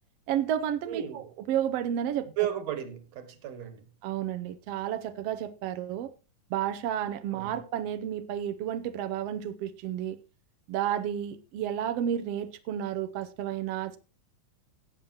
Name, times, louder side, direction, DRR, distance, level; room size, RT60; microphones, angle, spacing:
voice 1, 0.3-2.3 4.0-6.1 6.5-10.2 10.7-14.0, right 10 dB, 75° right, 1.4 m, -31 dB
voice 2, 0.9-1.2 2.4-3.8 7.3-7.5, right 11 dB, 60° right, 2.5 m, -34 dB
18.0 x 8.2 x 2.9 m
omnidirectional pair, 3.6 m